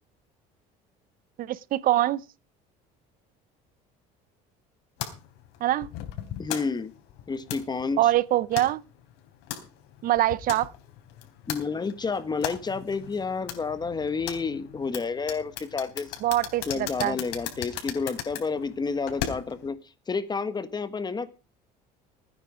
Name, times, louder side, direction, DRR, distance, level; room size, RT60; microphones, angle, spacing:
voice 1, 1.4-2.2 5.6-5.9 8.0-8.8 10.0-10.7 16.2-17.2, right 14 dB, 55° right, 0.6 m, -24 dB
sound 1, 5.0-19.7, left 11 dB, 75° left, 3.7 m, -38 dB
voice 2, 6.4-6.9 7.3-8.1 11.5-16.2 16.7-19.8 20.1-21.3, left 4 dB, 25° left, 1.4 m, -30 dB
17.0 x 9.4 x 4.9 m
supercardioid pair, 100°, 17 cm